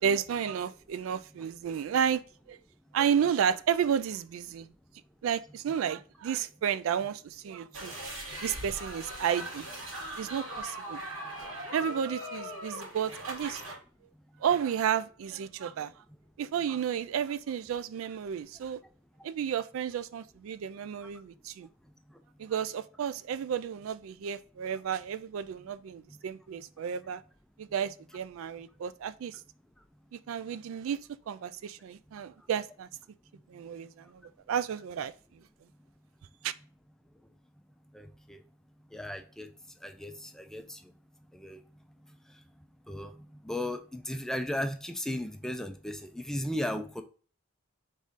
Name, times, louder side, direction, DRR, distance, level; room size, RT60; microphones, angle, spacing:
voice 1, 0.0-2.2 2.5-2.6 2.9-4.7 5.2-7.9 8.4-9.7 10.2-11.0 11.7-13.8 14.4-15.9 16.4-18.8 19.2-21.7 22.4-27.2 27.6-29.4 30.1-31.0 31.3-32.9 33.5-34.2 34.5-35.1 36.4-36.5, right 8 dB, 85° right, 0.3 m, -32 dB
sound 1, 7.7-13.7, right 1 dB, 70° right, 2.3 m, -40 dB
voice 2, 37.9-38.4 38.9-39.5 39.8-40.9 41.4-41.6 42.9-47.0, left 1 dB, 5° left, 0.4 m, -36 dB
4.0 x 3.6 x 3.6 m
head